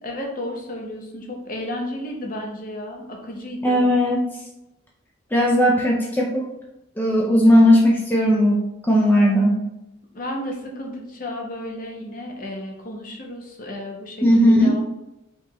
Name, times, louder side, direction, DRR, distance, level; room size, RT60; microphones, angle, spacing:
voice 1, 0.0-3.9 10.1-14.8, left 1 dB, 45° left, 0 dB, 0.8 m, -33 dB
voice 2, 3.6-4.2 5.3-6.5 7.0-9.6 14.2-14.8, equal, 10° left, -2 dB, 0.4 m, -17 dB
4.7 x 2.4 x 2.9 m, 0.89 s
head